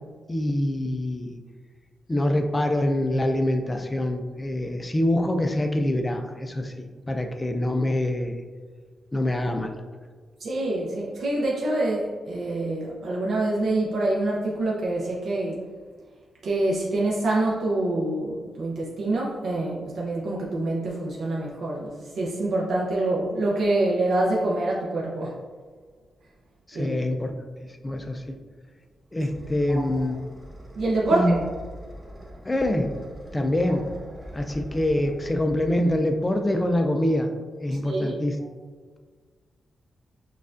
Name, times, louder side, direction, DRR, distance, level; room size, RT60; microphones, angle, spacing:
voice 1, 0.3-1.4 2.1-8.4 9.1-9.7 26.7-27.3 27.8-28.4 29.1-30.2 31.1-31.3 32.4-32.9 33.3-33.8 34.3-37.3 37.6-38.4, left 1 dB, 15° left, 5 dB, 0.3 m, -25 dB
voice 2, 10.4-15.6 16.4-25.4 26.7-27.0 29.7-29.9 30.8-31.5 37.8-38.2, right 2 dB, 65° right, -5 dB, 0.6 m, -26 dB
sound 1, 28.6-36.6, equal, 15° right, 1.0 m, -43 dB
6.4 x 2.3 x 2.5 m, 1.5 s
wide cardioid pair, 140°, 0 cm